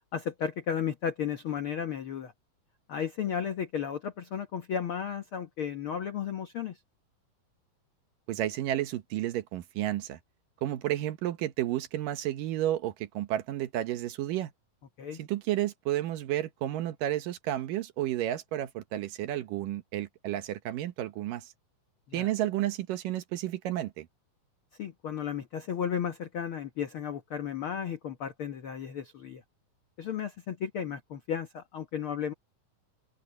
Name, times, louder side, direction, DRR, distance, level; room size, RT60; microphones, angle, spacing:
voice 1, 0.1-2.3 2.9-6.8 15.0-15.2 22.1-22.3 24.8-29.4 30.0-32.3, left 8 dB, 85° left, 1.1 m, -34 dB
voice 2, 8.3-10.2 10.6-14.5 15.2-21.5 22.1-24.1, right 13 dB, 70° right, 2.6 m, -31 dB
omnidirectional pair, 4.2 m